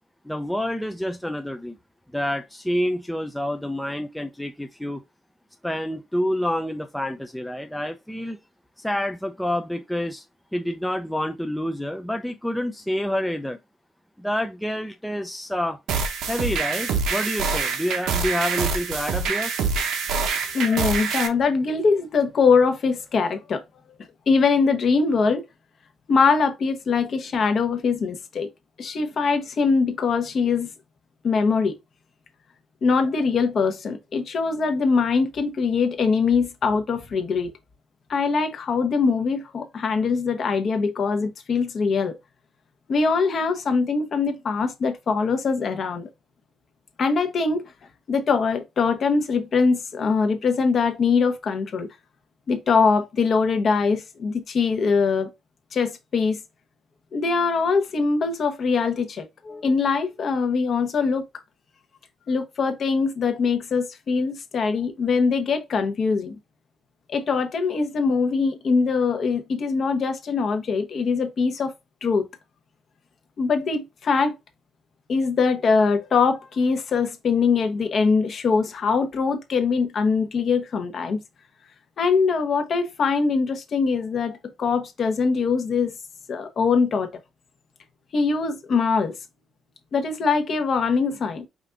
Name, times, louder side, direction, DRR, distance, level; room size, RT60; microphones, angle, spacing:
voice 1, 0.3-1.8 2.1-5.0 5.6-8.4 8.8-10.2 10.5-13.6 14.2-15.8 16.3-19.5, left 1 dB, 5° left, 0.4 m, -28 dB
sound 1, 15.9-21.3, right 5 dB, 85° right, 0.9 m, -25 dB
voice 2, 20.5-23.6 24.3-25.4 26.1-28.5 28.8-30.7 31.2-31.7 32.8-37.5 38.1-42.2 42.9-46.1 47.0-47.7 48.1-51.9 52.5-55.3 55.7-56.4 57.1-61.2 62.3-66.4 67.1-71.7 72.0-72.3 73.4-74.3 75.1-81.2 82.0-85.9 86.3-87.1 88.1-89.2 89.9-91.5, left 5 dB, 45° left, 0.9 m, -22 dB
5.0 x 2.6 x 3.4 m
cardioid pair, 140°, 0 cm